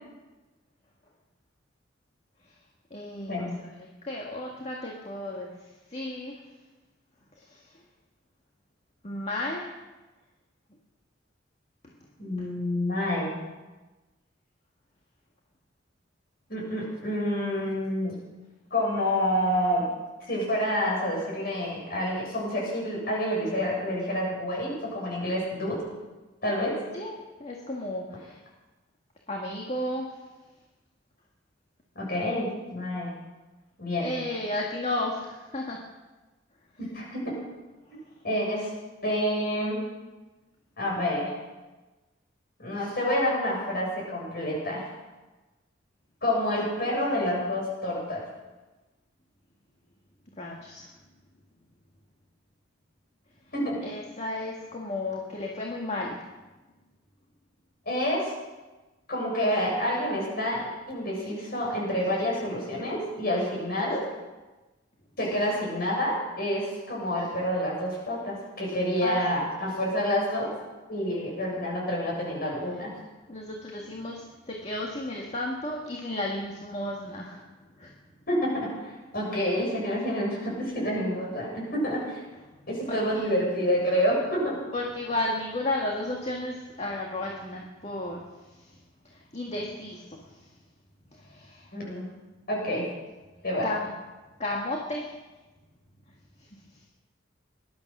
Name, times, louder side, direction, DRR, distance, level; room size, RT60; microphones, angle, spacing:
voice 1, 2.9-5.5 5.9-6.4 7.5-7.6 9.0-9.7 12.4-12.5 26.9-27.1 27.4-28.4 29.3-30.2 34.0-35.8 50.4-50.9 53.8-56.2 69.0-69.2 73.3-77.4 77.8-77.9 82.9-83.3 84.7-88.2 88.6-88.7 89.1-90.2 91.2-91.7 93.6-93.9 94.4-95.1, left 1 dB, 35° left, -1 dB, 1.8 m, -33 dB
voice 2, 12.2-13.3 16.5-18.1 18.7-19.8 20.2-25.8 26.4-26.7 32.0-33.1 33.8-34.1 36.8-37.3 38.2-38.7 39.0-39.8 40.8-41.3 42.6-44.8 46.2-48.2 53.5-53.8 57.9-58.2 59.1-64.0 65.2-70.5 70.9-72.9 78.3-82.2 82.7-84.6 91.7-92.0 92.5-92.8 93.4-93.7, equal, 50° left, -2 dB, 7.3 m, -28 dB
19.5 x 12.0 x 6.1 m, 1.2 s
head